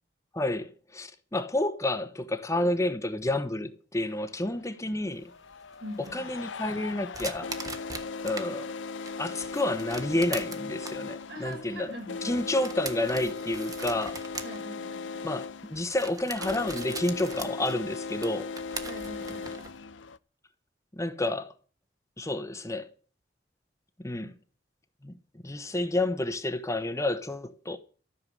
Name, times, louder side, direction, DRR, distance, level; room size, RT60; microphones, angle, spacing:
voice 1, 0.3-5.3 6.0-7.5 8.2-8.7 9.2-11.9 12.2-14.2 15.2-18.5 20.9-21.5 22.2-22.9 24.0-24.3 25.0-25.1 25.4-27.8, left 1 dB, 15° left, 1.0 m, -30 dB
sound 1, 4.0-4.1 5.2-20.2, left 4 dB, 85° left, 0.7 m, -38 dB
sound 2, 5.2-8.5 8.9-19.8, right 3 dB, 20° right, 1.3 m, -42 dB
voice 2, 5.8-6.3 11.3-12.4 14.4-15.3 18.8-19.8, equal, 70° right, 6.8 m, -42 dB
14.0 x 6.9 x 9.9 m
head